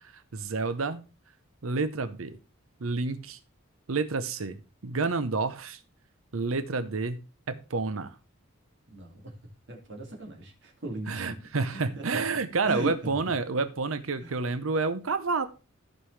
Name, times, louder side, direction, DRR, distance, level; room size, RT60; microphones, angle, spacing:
voice 1, 0.3-1.0 1.6-2.4 2.8-3.4 3.9-5.8 6.3-8.1 11.1-15.5, right 4 dB, 85° right, 11 dB, 0.8 m, -29 dB
voice 2, 8.9-9.2 9.7-11.4 11.7-12.2 12.6-12.9 14.2-14.3, right 2 dB, 60° right, 0 dB, 2.5 m, -38 dB
14.5 x 5.4 x 3.3 m, 0.32 s
head